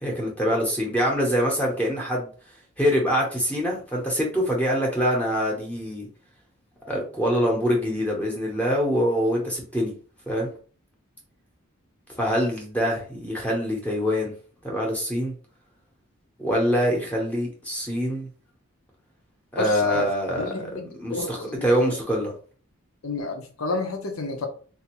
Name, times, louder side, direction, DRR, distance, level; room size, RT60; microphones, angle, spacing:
voice 1, 0.0-2.3 2.8-6.1 6.9-9.9 10.3-10.5 12.2-14.3 14.6-15.3 16.4-18.3 19.5-20.7 21.0-22.3, equal, 5° left, 0.7 m, -24 dB
voice 2, 19.6-20.1 20.4-22.0 23.0-24.5, left 3 dB, 85° left, 0.7 m, -31 dB
3.4 x 2.5 x 2.9 m
head